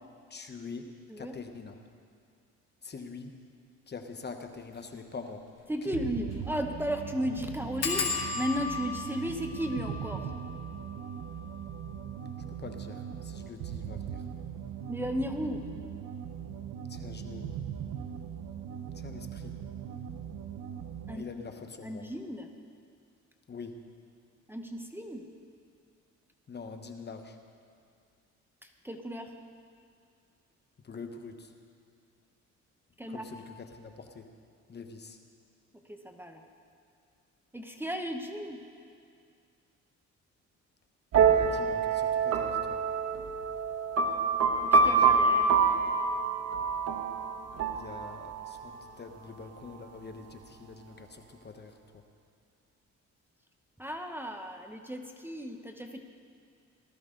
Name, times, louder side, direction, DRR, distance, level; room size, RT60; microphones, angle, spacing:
voice 1, 0.3-0.9 1.2-1.8 2.8-3.3 3.9-5.4 5.9-6.0 12.6-14.2 16.9-17.5 19.0-19.5 21.1-22.0 23.5-23.8 26.5-27.3 30.8-31.5 33.1-34.3 34.7-35.2 41.3-42.8 44.8-45.1 47.7-51.7, left 4 dB, 35° left, 6 dB, 1.1 m, -44 dB
sound 1, 4.6-4.8 5.3-5.4 5.6-5.7 6.2-6.5 6.7-6.8 7.8-13.1 13.8-14.3 14.6-14.9 15.2-15.3, left 5 dB, 55° left, 2.2 m, -37 dB
voice 2, 5.7-10.3 14.9-15.6 21.1-21.2 21.8-22.5 24.5-25.2 28.6-29.3 33.0-33.3 35.9-36.4 37.5-38.6 44.6-45.5 53.8-56.0, equal, 5° right, 4 dB, 1.0 m, -35 dB
sound 2, 5.9-21.3, right 8 dB, 80° right, 0.7 m, -40 dB
sound 3, 41.1-48.7, right 5 dB, 55° right, 1.2 m, -26 dB
18.5 x 13.5 x 3.8 m, 2.3 s
cardioid pair, 90°, 30 cm